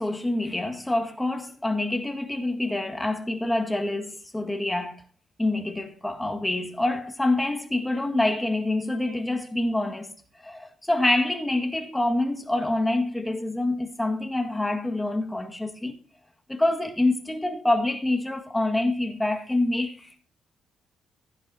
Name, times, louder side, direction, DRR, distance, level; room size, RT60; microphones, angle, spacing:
voice 1, 0.0-5.0 5.4-10.1 10.4-15.9 16.5-20.1, left 2 dB, 10° left, 1.9 m, -26 dB
15.0 x 11.0 x 2.8 m
cardioid pair, 90°, 0 cm